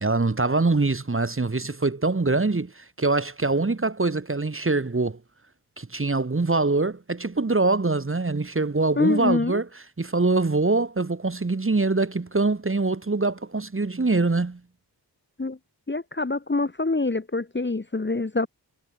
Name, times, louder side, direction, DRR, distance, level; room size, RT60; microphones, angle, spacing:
voice 1, 0.0-5.2 5.8-9.7 10.0-14.6, right 3 dB, 30° right, 1.2 m, -24 dB
voice 2, 9.0-9.6 15.4-15.6 15.9-18.5, left 3 dB, 25° left, 1.0 m, -25 dB
cardioid pair, 40°, 41 cm